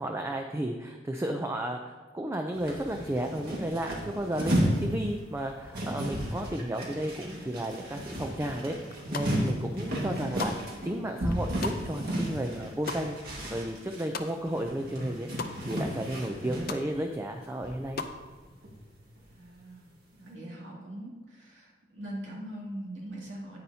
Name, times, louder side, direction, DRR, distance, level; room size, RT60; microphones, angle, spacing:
voice 1, 0.0-8.8 9.1-10.5 10.8-15.3 15.7-18.0, right 1 dB, 15° right, 3 dB, 0.5 m, -33 dB
sound 1, 2.5-16.8 17.3-17.4 17.6-18.9 19.2-19.3, equal, 55° right, 1.8 m, -33 dB
sound 2, 8.9-9.6 9.9-14.7 15.0-15.6 16.0-16.1 16.3-16.8 17.3-18.2, left 4 dB, 55° left, 0.6 m, -39 dB
voice 2, 10.0-10.6 19.4-23.6, right 1 dB, 80° right, -4 dB, 2.5 m, -42 dB
9.6 x 9.1 x 2.8 m, 1.4 s
head